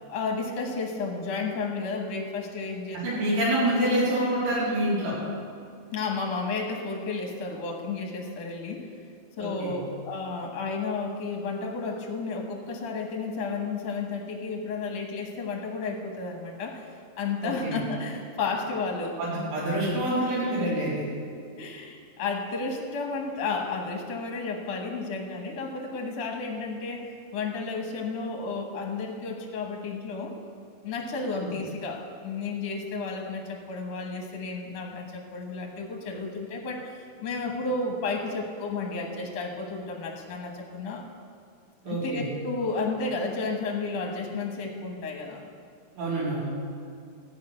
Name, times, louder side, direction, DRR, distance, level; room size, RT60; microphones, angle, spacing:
voice 1, 0.1-3.2 5.9-8.9 9.4-16.9 17.2-19.2 20.1-20.2 20.8-20.9 21.6-30.3 30.8-41.0 41.8-45.4, left 4 dB, 65° left, 1 dB, 1.7 m, -32 dB
voice 2, 2.9-5.1 9.4-9.8 17.4-17.8 19.2-21.0 31.4-31.5 41.8-42.2 45.9-46.4, right 1 dB, 90° right, -8 dB, 5.9 m, -26 dB
14.0 x 6.1 x 8.8 m, 2.3 s
omnidirectional pair, 4.7 m